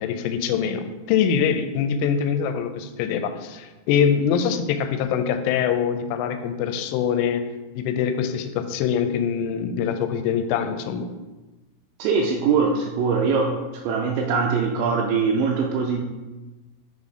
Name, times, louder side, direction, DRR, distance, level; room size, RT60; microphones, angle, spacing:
voice 1, 0.0-7.4 7.8-11.1, left 7 dB, 85° left, 8 dB, 3.1 m, -24 dB
voice 2, 12.0-16.0, right 5 dB, 80° right, 1 dB, 2.7 m, -22 dB
6.8 x 4.2 x 4.9 m, 1.2 s
omnidirectional pair, 5.6 m